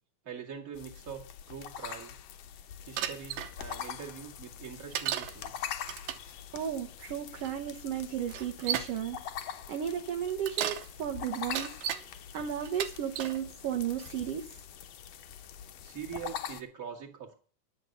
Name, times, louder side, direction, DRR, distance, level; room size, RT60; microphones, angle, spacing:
voice 1, 0.2-1.2 1.5-2.2 2.9-5.5 15.8-17.3, right 8 dB, 30° right, -1 dB, 2.1 m, -43 dB
sound 1, 0.7-16.6, left 9 dB, 65° left, 1.9 m, -44 dB
Bicycle, 3.0-3.5 4.9-5.3 5.8-6.3 7.4-7.5 8.3-9.0 10.3-10.9 11.4-12.0 12.7-13.4 14.0-14.4, right 11 dB, 90° right, 2.6 m, -34 dB
voice 2, 6.5-11.8 12.3-14.6, right 9 dB, 65° right, 2 dB, 1.6 m, -34 dB
11.0 x 7.2 x 7.9 m, 0.43 s
omnidirectional pair, 3.8 m